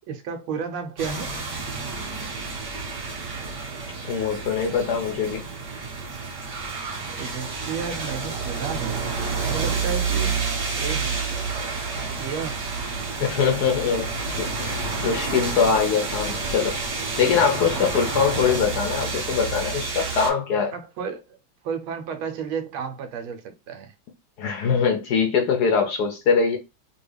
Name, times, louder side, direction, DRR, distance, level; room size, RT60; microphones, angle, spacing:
voice 1, 0.1-1.3 7.1-9.1 9.4-10.4 10.8-11.2 12.2-12.6 13.9-14.1 17.7-17.9 20.7-21.4 21.6-23.9, right 6 dB, 80° right, 1.4 m, -32 dB
sound 1, 1.0-20.3, right 4 dB, 40° right, 1.5 m, -29 dB
voice 2, 4.1-5.4 13.2-16.8 17.2-20.7 24.4-26.6, left 6 dB, 70° left, 0.9 m, -23 dB
3.6 x 2.3 x 3.3 m
omnidirectional pair, 2.3 m